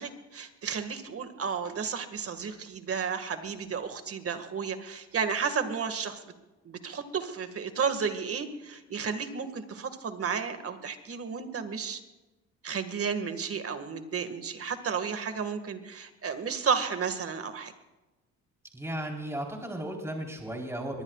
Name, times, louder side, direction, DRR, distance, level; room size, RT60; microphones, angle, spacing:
voice 1, 0.0-6.2 6.6-12.0 12.6-17.7, right 6 dB, 50° right, 8 dB, 1.9 m, -32 dB
voice 2, 18.7-21.0, right 1 dB, 10° right, 0 dB, 3.9 m, -35 dB
23.0 x 19.5 x 2.4 m, 1.1 s
cardioid pair, 90°, 30 cm